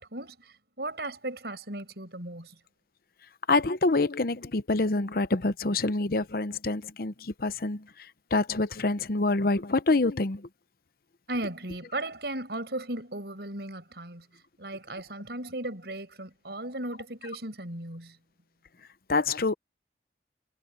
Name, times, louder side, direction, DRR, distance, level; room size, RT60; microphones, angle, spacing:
voice 1, 0.0-2.6 11.3-14.3 14.6-18.2, right 1 dB, 70° right, 5.8 m, -36 dB
voice 2, 3.5-7.8 8.3-10.5 19.1-19.5, left 3 dB, 55° left, 0.8 m, -26 dB
head